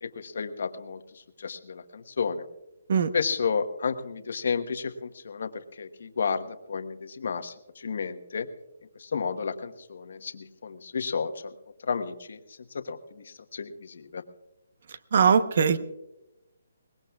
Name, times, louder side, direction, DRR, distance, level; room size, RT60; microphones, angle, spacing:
voice 1, 0.0-2.4 3.1-8.5 9.0-11.5 11.8-14.2, left 5 dB, 65° left, 9 dB, 1.2 m, -32 dB
voice 2, 15.1-15.8, right 6 dB, 55° right, 12 dB, 0.9 m, -20 dB
22.0 x 19.5 x 2.4 m, 0.95 s
hypercardioid pair, 165°, 0 cm